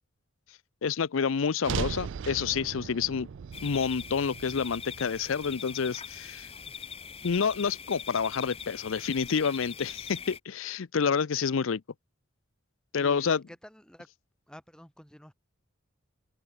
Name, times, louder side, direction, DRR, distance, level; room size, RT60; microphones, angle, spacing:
voice 1, 0.8-3.3 3.6-6.5 7.2-11.8 12.9-13.4, left 6 dB, 75° left, 0.5 m, -28 dB
sound 1, 1.6-5.9, right 6 dB, 60° right, 0.4 m, -38 dB
sound 2, 3.5-10.4, left 7 dB, 30° left, 0.8 m, -42 dB
voice 2, 13.0-14.1 14.5-15.3, equal, 5° left, 1.3 m, -49 dB
head